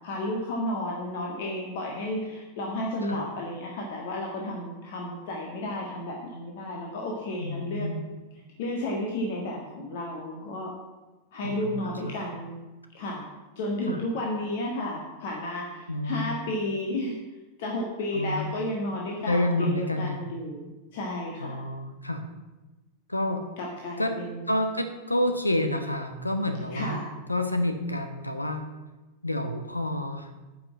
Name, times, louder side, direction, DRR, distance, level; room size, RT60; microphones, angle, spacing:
voice 1, 0.0-7.9 8.6-10.7 11.3-12.6 12.9-13.2 13.6-17.2 17.6-21.6 23.6-24.5 26.7-27.1, left 1 dB, 55° left, -1 dB, 1.7 m, -32 dB
voice 2, 7.4-8.0 11.4-12.2 13.9-14.0 15.9-16.3 18.1-18.5 19.3-20.3 21.4-22.2 23.1-23.4 24.0-24.2 24.5-28.6 29.2-30.3, left 1 dB, 85° left, 7 dB, 0.9 m, -29 dB
9.6 x 6.0 x 7.5 m, 1.1 s
figure-of-eight pair, 90°, 0 cm